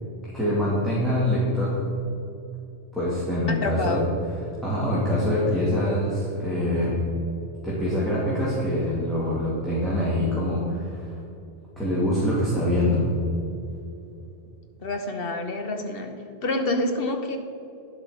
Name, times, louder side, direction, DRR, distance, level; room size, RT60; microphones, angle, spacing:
voice 1, 0.3-1.8 2.9-4.0 4.6-7.0 7.6-11.2 11.8-13.0, left 1 dB, ahead, -9 dB, 2.3 m, -24 dB
voice 2, 3.5-4.1 14.8-16.1 16.4-17.4, left 2 dB, 50° left, 5 dB, 1.1 m, -27 dB
10.5 x 7.8 x 5.1 m, 2.7 s
omnidirectional pair, 1.3 m